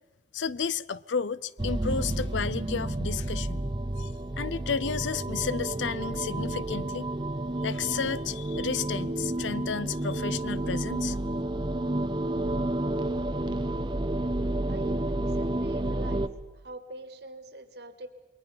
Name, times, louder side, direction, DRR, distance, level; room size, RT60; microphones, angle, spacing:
voice 1, 0.3-3.7 4.0-4.1 4.4-7.1 7.6-11.2, left 6 dB, 90° left, 0.6 m, -32 dB
sound 1, 1.6-16.3, right 1 dB, 25° right, 0.7 m, -30 dB
voice 2, 14.7-16.3 16.5-18.1, right 2 dB, 60° right, 1.9 m, -44 dB
28.0 x 21.5 x 5.8 m
head